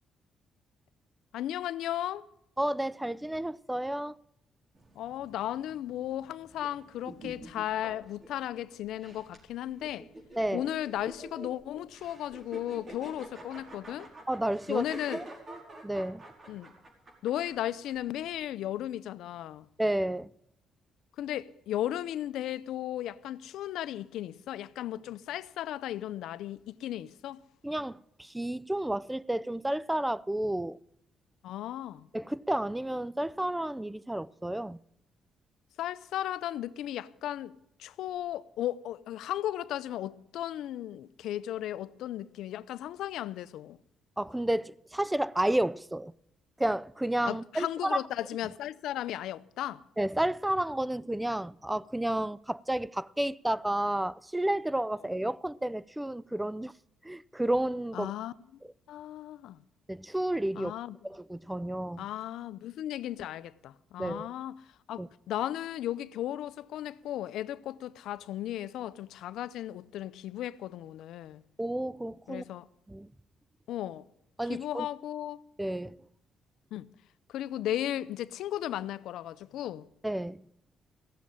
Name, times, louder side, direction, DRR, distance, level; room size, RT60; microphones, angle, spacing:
voice 1, 1.3-2.3 5.0-10.1 10.5-14.1 14.7-15.2 16.5-16.7 17.2-19.7 21.2-27.4 31.4-32.1 35.8-37.5 37.8-43.8 47.2-49.8 57.9-58.3 58.9-59.6 60.5-61.0 62.0-71.4 72.3-72.7 73.7-74.1 74.5-75.4 76.7-76.9 77.3-79.9, left 12 dB, 85° left, 0.6 m, -35 dB
voice 2, 2.6-4.2 10.4-10.7 14.3-14.9 15.1-15.2 15.8-16.2 19.8-20.3 27.6-30.8 32.1-34.8 44.2-46.1 46.6-48.0 50.0-56.7 57.0-58.1 59.9-60.8 61.0-62.0 64.0-64.3 65.0-65.1 71.6-72.5 72.9-73.1 74.4-74.9 75.6-76.0 80.0-80.5, right 1 dB, 10° right, 0.5 m, -31 dB
sound 1, 4.7-18.3, right 1 dB, 40° right, 4.8 m, -48 dB
17.0 x 7.5 x 9.9 m
cardioid pair, 90°, 0 cm